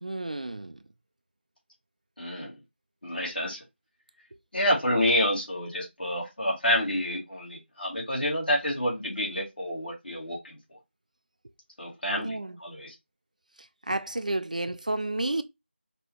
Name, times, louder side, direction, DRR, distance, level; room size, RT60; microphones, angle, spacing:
voice 1, 0.0-0.8 12.1-12.6 13.6-15.4, right 2 dB, 40° right, 0.4 m, -31 dB
voice 2, 2.2-2.5 3.0-3.6 4.5-10.8 11.8-12.9, left 1 dB, 50° left, 2.9 m, -28 dB
5.2 x 2.9 x 3.2 m
figure-of-eight pair, 170°, 6 cm